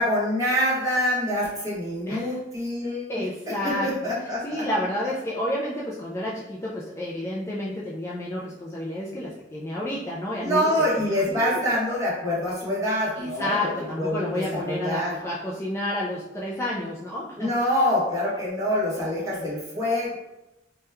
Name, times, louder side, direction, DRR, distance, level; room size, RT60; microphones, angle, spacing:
voice 1, 0.0-4.6 10.4-13.7 14.0-15.2 17.4-20.1, equal, 20° right, -7 dB, 1.1 m, -26 dB
voice 2, 2.1-2.4 3.1-4.1 4.4-11.6 13.2-17.7, left 1 dB, 15° left, -6 dB, 0.3 m, -30 dB
3.0 x 2.2 x 3.3 m, 0.92 s
head